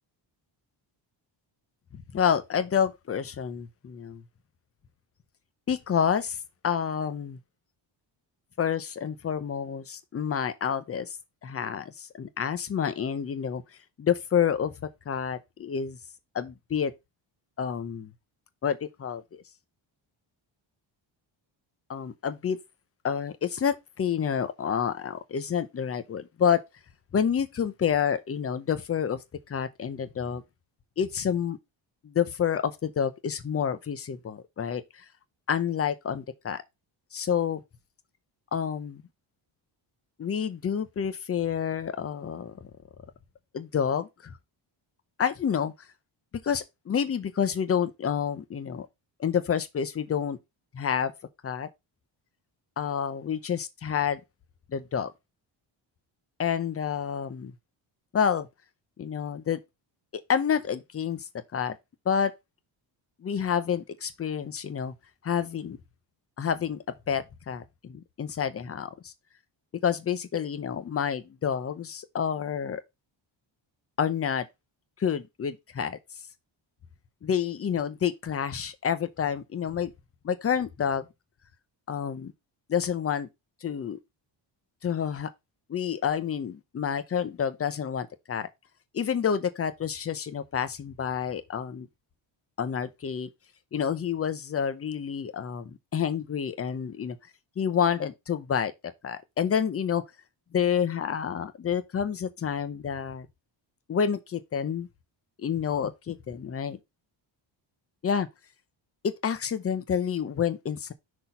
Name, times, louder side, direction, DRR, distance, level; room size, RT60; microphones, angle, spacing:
voice 1, 1.9-4.2 5.7-6.4 6.6-7.4 8.6-11.2 11.4-13.6 14.0-14.7 15.1-16.0 16.3-16.9 17.6-18.1 18.6-19.2 21.9-22.6 23.0-26.6 27.1-29.2 29.5-30.4 31.0-31.6 32.0-35.0 35.5-36.6 37.1-37.6 38.5-39.0 40.2-42.5 43.5-44.3 45.2-45.7 46.4-48.9 49.2-50.4 50.7-51.1 51.4-51.7 52.8-54.2 54.7-55.1 56.4-57.5 58.1-58.5 59.0-59.6 60.1-61.2 61.5-61.7 62.1-62.3 63.2-64.9 65.2-65.8 66.4-69.1 69.8-72.8 74.0-74.5 75.0-76.0 77.2-79.9 80.2-81.1 81.9-82.3 82.7-83.3 83.6-84.0 84.8-85.3 85.7-88.5 88.9-91.9 92.6-93.3 93.7-97.2 97.6-98.7 99.0-100.0 100.5-103.3 103.9-104.9 105.4-106.8 108.0-108.3 109.0-110.9, left 7 dB, 30° left, 0.7 m, -28 dB
6.2 x 4.3 x 5.4 m
wide cardioid pair, 180°, 47 cm